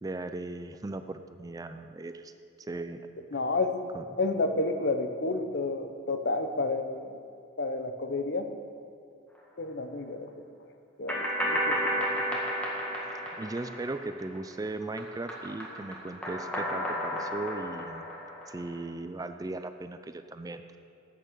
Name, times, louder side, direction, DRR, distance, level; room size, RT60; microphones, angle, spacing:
voice 1, 0.0-2.3 2.7-3.0 3.9-4.0 13.3-18.1 18.5-20.8, right 2 dB, 20° right, 9 dB, 0.4 m, -37 dB
voice 2, 3.3-3.8 4.2-7.2 7.6-8.5 9.6-10.3 11.0-12.1, left 3 dB, 55° left, 7 dB, 0.8 m, -30 dB
sound 1, 11.1-14.5 14.8-18.8, equal, 5° left, 1.8 m, -32 dB
10.0 x 8.9 x 6.7 m, 2.4 s
head